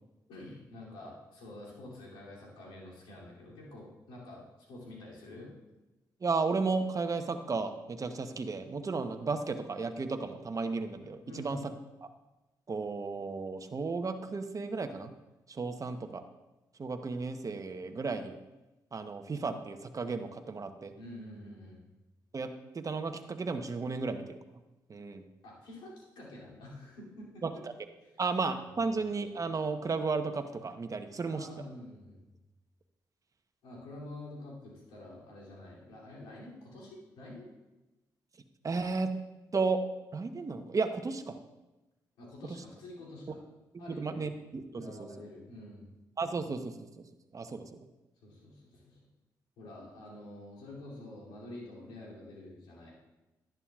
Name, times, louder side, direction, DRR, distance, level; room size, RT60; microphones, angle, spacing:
voice 1, 0.3-5.5 11.3-11.6 21.0-21.9 25.4-27.6 28.0-28.1 31.3-32.2 33.6-37.5 42.2-43.4 43.8-44.3 44.7-45.9 48.2-49.0 49.6-52.9, left 1 dB, 85° left, -5 dB, 2.8 m, -47 dB
voice 2, 6.2-11.6 12.0-12.1 12.7-15.1 15.5-16.2 16.8-18.3 18.9-20.9 22.3-22.5 22.7-24.4 24.9-25.2 28.2-31.5 38.6-39.1 39.5-39.8 40.1-41.4 43.7-45.1 46.2-47.0 47.3-47.6, right 4 dB, 40° right, 8 dB, 0.9 m, -34 dB
11.0 x 10.5 x 2.4 m, 1.0 s
supercardioid pair, 45°, 8 cm